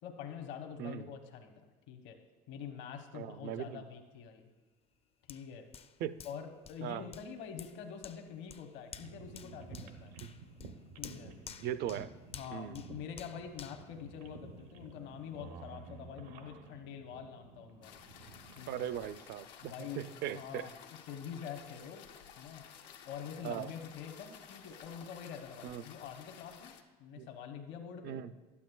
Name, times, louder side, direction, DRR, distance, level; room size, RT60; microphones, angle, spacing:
voice 1, 0.0-2.2 2.5-4.5 5.3-5.7 6.2-10.2 10.9-11.4 12.3-17.9 18.6-18.8 19.6-22.1 22.4-22.7 23.0-26.7 27.0-28.2, left 7 dB, 60° left, 5 dB, 0.9 m, -46 dB
voice 2, 3.1-3.8 6.0-6.2 6.8-7.0 10.2-10.3 11.6-12.1 12.5-12.8 18.7-20.7 23.4-23.7 25.6-25.8 27.2-27.3 28.0-28.3, right 10 dB, 50° right, 14 dB, 0.4 m, -39 dB
Hands, 5.3-14.8 15.3-15.4, left 7 dB, 30° left, 0.4 m, -53 dB
sound 1, 8.9-19.2, right 4 dB, 75° right, 0.8 m, -52 dB
sound 2, 17.8-26.8, left 8 dB, 85° left, 0.7 m, -54 dB
11.5 x 8.4 x 2.3 m, 1.3 s
hypercardioid pair, 80°, 21 cm